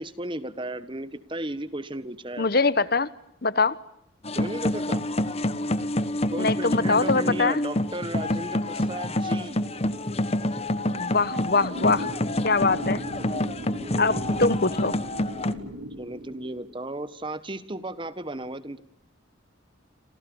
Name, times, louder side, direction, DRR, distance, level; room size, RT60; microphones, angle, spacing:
voice 1, 0.0-2.5 4.3-5.0 6.3-9.6 13.7-14.5 16.0-18.8, right 1 dB, 25° right, 14 dB, 1.4 m, -35 dB
voice 2, 2.4-3.1 3.4-3.8 6.4-7.6 11.0-12.1 12.4-13.0 14.0-14.9, left 3 dB, 50° left, 16 dB, 1.1 m, -23 dB
sound 1, 4.2-15.5, left 1 dB, 30° left, 1.3 m, -27 dB
sound 2, 8.8-16.9, equal, 80° right, 7.5 m, -40 dB
28.0 x 27.5 x 7.2 m, 0.76 s
head